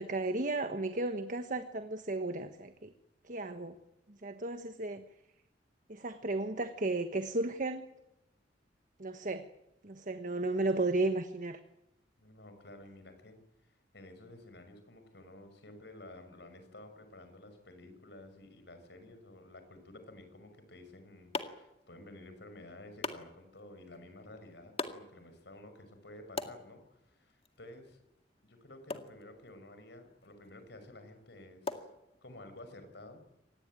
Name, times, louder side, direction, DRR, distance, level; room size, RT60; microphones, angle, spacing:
voice 1, 0.0-2.9 3.2-3.8 4.1-5.0 5.9-7.8 9.0-9.5 9.8-11.6, right 2 dB, 45° right, 8 dB, 1.3 m, -34 dB
voice 2, 12.2-28.0 28.4-31.9 32.2-33.3, left 1 dB, 70° left, 8 dB, 6.1 m, -52 dB
sound 1, 20.7-32.6, left 3 dB, 35° left, 2.0 m, -46 dB
25.5 x 19.5 x 9.1 m, 0.88 s
head